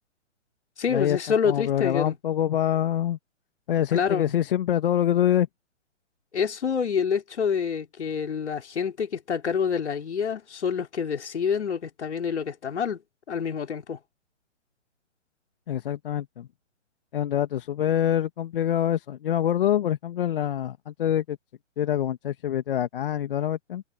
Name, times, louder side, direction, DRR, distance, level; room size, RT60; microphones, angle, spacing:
voice 1, 0.8-2.2 3.9-4.3 6.3-13.0 13.3-14.0, left 6 dB, 65° left, 4.5 m, -27 dB
voice 2, 1.5-3.2 3.7-5.5 15.7-16.5 17.1-21.4 21.8-23.8, left 11 dB, 45° left, 1.9 m, -25 dB
figure-of-eight pair, 135°, 37 cm